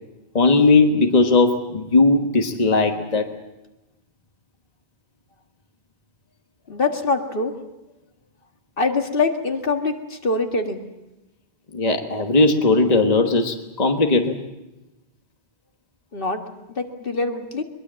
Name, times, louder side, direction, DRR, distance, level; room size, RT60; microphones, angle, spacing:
voice 1, 0.3-3.3 11.7-14.4, left 3 dB, 40° left, 4 dB, 1.5 m, -18 dB
voice 2, 6.7-7.5 8.8-10.8 16.1-16.4 16.7-17.6, left 3 dB, 60° left, 4 dB, 1.9 m, -24 dB
22.0 x 21.5 x 7.5 m, 1.0 s
omnidirectional pair, 1.1 m